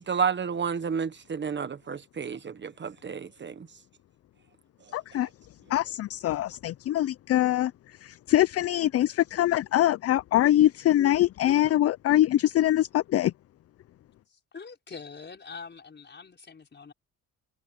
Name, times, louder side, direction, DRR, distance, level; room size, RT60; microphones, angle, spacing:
voice 1, 0.1-3.7, right 6 dB, 40° right, 1.3 m, -31 dB
voice 2, 4.9-5.3 5.7-7.7 8.0-13.3, left 13 dB, 50° left, 0.5 m, -23 dB
voice 3, 14.3-16.9, left 5 dB, 35° left, 5.5 m, -44 dB
cardioid pair, 90°, 30 cm